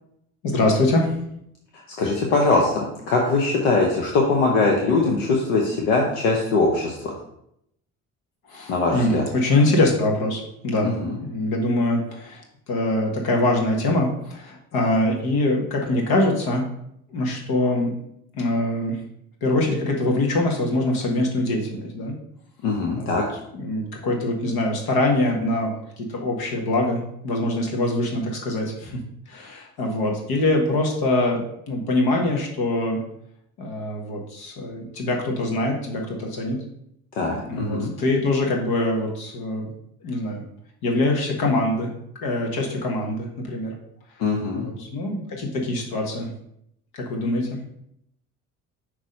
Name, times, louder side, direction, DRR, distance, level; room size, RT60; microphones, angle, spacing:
voice 1, 0.4-1.2 8.5-10.9 11.2-12.4 12.7-16.6 17.1-17.9 18.3-19.0 19.4-22.1 23.0-23.2 23.5-29.0 29.3-33.0 33.6-36.6 37.4-39.7 40.0-40.4 40.8-41.9 42.2-43.7 44.5-46.3 46.9-47.6, left 2 dB, 65° left, 1 dB, 1.5 m, -23 dB
voice 2, 2.0-7.1 8.7-9.2 10.8-11.2 22.6-23.2 37.1-37.9 44.2-44.7, left 3 dB, 85° left, -1 dB, 1.0 m, -21 dB
6.1 x 3.1 x 5.3 m, 0.76 s
hypercardioid pair, 65°, 39 cm